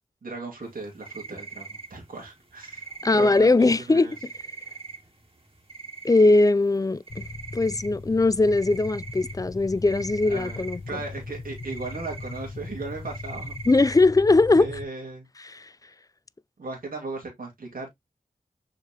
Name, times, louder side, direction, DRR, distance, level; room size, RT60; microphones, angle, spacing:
voice 1, 0.2-2.9 3.1-4.2 10.2-13.5 14.6-15.3 16.6-17.9, right 3 dB, 80° right, 2.3 m, -37 dB
sound 1, 0.6-14.0, right 5 dB, 40° right, 2.2 m, -43 dB
voice 2, 3.0-4.1 6.0-7.3 7.5-10.8 13.7-14.7 15.4-15.7, left 2 dB, 25° left, 0.4 m, -20 dB
sound 2, 7.1-14.8, left 3 dB, 45° left, 0.9 m, -39 dB
6.6 x 4.9 x 2.9 m
wide cardioid pair, 55°, 14 cm